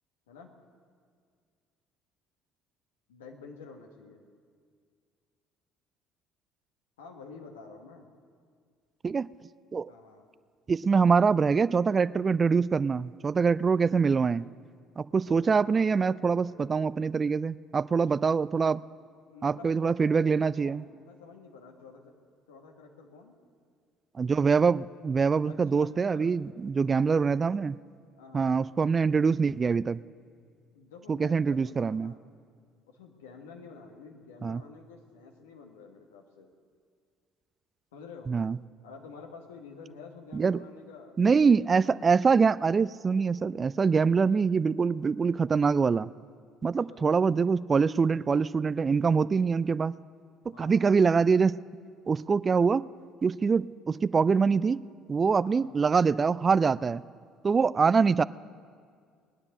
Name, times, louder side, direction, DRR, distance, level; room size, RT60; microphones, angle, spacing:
voice 1, 3.1-4.2 7.0-8.1 9.9-10.3 15.3-16.8 18.1-18.2 19.3-22.1 22.5-23.3 25.4-26.4 28.2-28.7 30.7-32.2 32.9-36.5 37.9-38.3 38.8-42.0 46.9-47.1 50.5-51.0 55.3-55.7, left 4 dB, 80° left, 3 dB, 1.5 m, -49 dB
voice 2, 10.7-14.5 15.0-18.8 19.4-20.8 24.2-27.8 28.3-30.0 31.1-32.1 34.4-34.6 38.3-38.6 40.3-40.6 41.2-46.1 46.6-49.9 50.6-51.6 52.1-52.8 53.2-54.8 55.1-57.0 57.4-58.2, right 5 dB, 35° right, 18 dB, 0.3 m, -24 dB
20.0 x 9.8 x 6.6 m, 2.1 s
hypercardioid pair, 55°, 0 cm